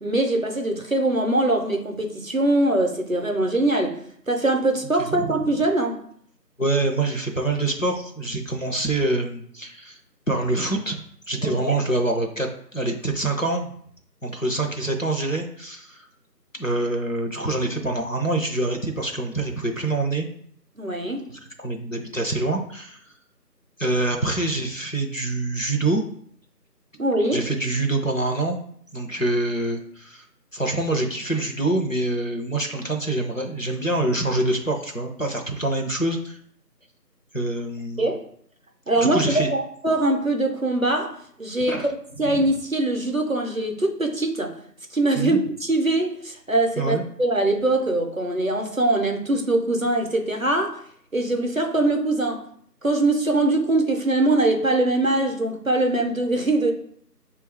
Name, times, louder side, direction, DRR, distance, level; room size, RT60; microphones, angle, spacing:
voice 1, 0.0-4.0 4.3-6.0 11.4-11.8 20.8-21.2 27.0-27.4 38.0-38.2 38.9-41.8 42.2-44.6 44.9-50.8 51.1-52.5 52.8-56.7, right 2 dB, 55° right, 0.5 m, -22 dB
voice 2, 5.0-5.3 6.6-10.0 10.3-11.0 11.3-13.7 14.2-16.1 16.5-20.3 21.3-23.0 23.8-26.0 27.3-28.6 28.9-30.2 30.5-36.4 37.3-38.1 39.0-39.5 41.7-41.9 42.3-42.4 45.1-45.4 46.8-47.0, right 2 dB, 55° left, 0.5 m, -25 dB
5.2 x 2.3 x 3.3 m
figure-of-eight pair, 180°, 50 cm